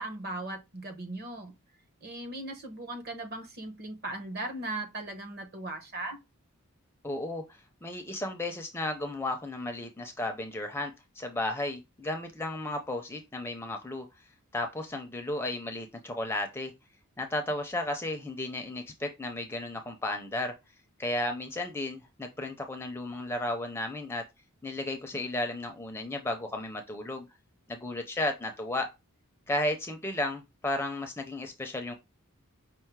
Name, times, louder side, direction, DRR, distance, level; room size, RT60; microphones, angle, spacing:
voice 1, 0.0-1.5 2.0-6.2, right 2 dB, 45° right, 1.0 m, -38 dB
voice 2, 7.0-14.1 14.5-16.7 17.2-20.5 21.0-24.2 24.6-27.3 27.7-28.9 29.5-31.9, left 1 dB, 10° left, 0.5 m, -34 dB
5.5 x 2.0 x 4.5 m
head